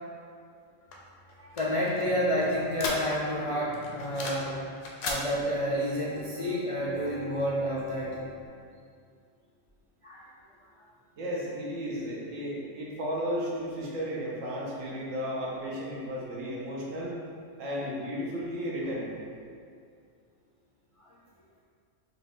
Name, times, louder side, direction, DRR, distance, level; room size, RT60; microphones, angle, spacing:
sound 1, 0.9-3.4 3.7-4.5 4.8-5.2, left 3 dB, 80° left, 1.1 m, -36 dB
voice 1, 1.4-4.5 5.0-8.2 10.0-10.3, equal, 65° left, -6 dB, 0.3 m, -29 dB
Piano, 2.0-3.0 3.5-4.6 5.2-8.5, right 2 dB, 65° right, 1.2 m, -44 dB
voice 2, 11.2-17.1 17.6-19.1, equal, 90° right, -5 dB, 1.3 m, -34 dB
6.1 x 2.4 x 3.6 m, 2.3 s
omnidirectional pair, 1.3 m